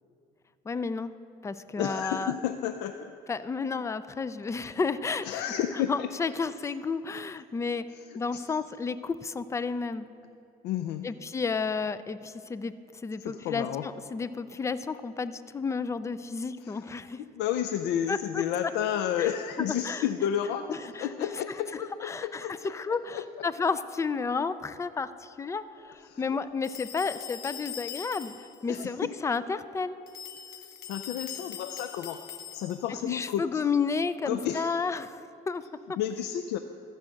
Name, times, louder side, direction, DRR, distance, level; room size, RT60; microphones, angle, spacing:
voice 1, 0.7-1.1 1.4-2.3 3.3-5.4 5.7-7.8 8.1-10.1 11.0-12.7 13.0-17.2 18.1-18.4 19.2-20.1 20.7-21.6 22.0-28.3 28.6-30.0 33.0-35.6 35.9-36.0, left 5 dB, 15° left, 14 dB, 0.3 m, -32 dB
voice 2, 1.8-3.1 5.2-6.1 8.3-8.4 10.6-11.1 13.2-13.9 16.6-16.8 17.3-22.6 23.1-23.2 26.0-26.2 28.7-29.1 30.5-32.2 32.5-33.6 34.3-34.8 36.0-36.6, left 10 dB, 90° left, 8 dB, 0.4 m, -31 dB
sound 1, 26.6-28.6 30.1-32.9, left 8 dB, 65° left, 0.7 m, -42 dB
14.0 x 4.8 x 6.3 m, 2.6 s
cardioid pair, 110°, 17 cm